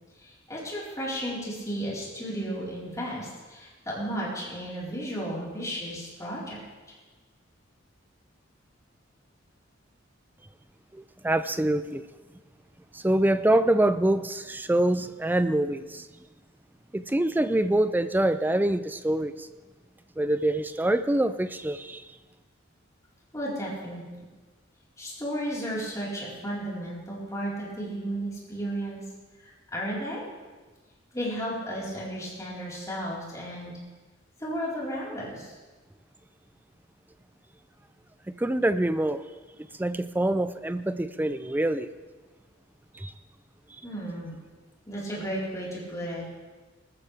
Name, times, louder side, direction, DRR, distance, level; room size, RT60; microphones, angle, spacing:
voice 1, 0.2-6.6 23.3-24.0 25.0-29.0 29.4-30.2 31.1-33.7 34.4-35.5 43.8-44.4 44.9-46.2, equal, 15° left, -7 dB, 4.5 m, -34 dB
voice 2, 10.9-12.0 12.9-16.1 16.9-19.5 20.2-22.0 38.3-39.2 39.8-41.9 42.9-43.1, right 1 dB, 10° right, 12 dB, 0.4 m, -25 dB
19.5 x 14.0 x 3.5 m, 1.3 s
head